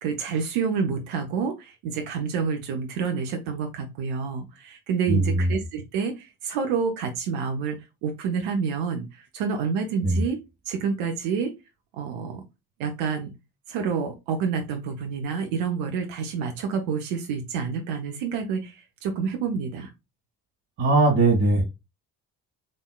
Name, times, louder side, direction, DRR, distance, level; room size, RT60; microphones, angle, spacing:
voice 1, 0.0-9.1 9.3-10.4 10.7-11.5 11.9-12.4 12.8-13.3 13.7-18.7 19.0-19.9, right 6 dB, 70° right, 1.0 m, -28 dB
voice 2, 5.1-5.5 10.0-10.2 20.8-21.6, right 2 dB, 50° right, 2.1 m, -20 dB
3.9 x 3.5 x 2.2 m
hypercardioid pair, 45°, 50 cm